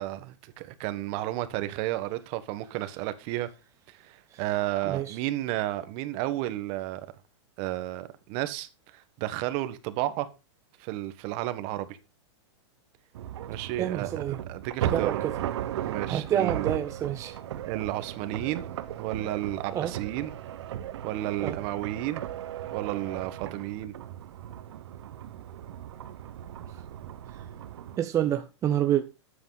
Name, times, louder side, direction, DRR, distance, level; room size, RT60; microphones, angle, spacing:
voice 1, 0.0-3.5 3.9-7.0 7.6-8.7 8.9-10.3 10.8-12.0 13.5-15.3 15.8-16.7 17.7-18.6 19.0-20.3 21.0-22.2 22.7-23.9, right 15 dB, 40° right, 1.4 m, -32 dB
voice 2, 4.9-5.2 13.8-14.4 14.8-15.3 16.1-17.4 19.7-19.9 21.4-21.6 28.0-29.1, right 10 dB, 20° right, 0.8 m, -28 dB
sound 1, 13.1-28.0, right 11 dB, 70° right, 1.2 m, -36 dB
12.5 x 8.6 x 4.1 m
hypercardioid pair, 145°, 15 cm